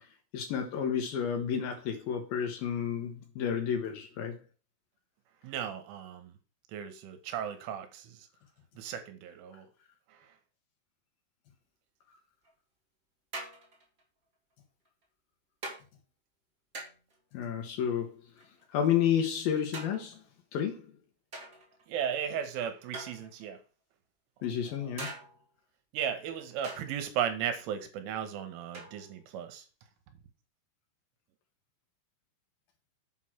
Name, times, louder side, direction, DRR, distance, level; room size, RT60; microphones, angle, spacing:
voice 1, 0.3-4.4 17.3-18.2 18.7-20.2 20.5-20.9 24.4-25.1, left 8 dB, 75° left, 2.2 m, -31 dB
voice 2, 5.4-6.3 6.7-8.3 8.8-9.7 21.9-23.6 24.7-24.9 25.9-29.7, right 9 dB, 80° right, 3.6 m, -36 dB
sound 1, 12.4-12.5 13.3-14.0 14.9-15.0 15.6-15.8 16.7-17.2 18.4-19.0 19.7-20.3 21.3-21.8 22.9-23.6 25.0-25.5 26.6-27.0 28.7-29.2, right 2 dB, 30° right, 1.7 m, -43 dB
8.2 x 6.1 x 6.0 m
omnidirectional pair, 5.7 m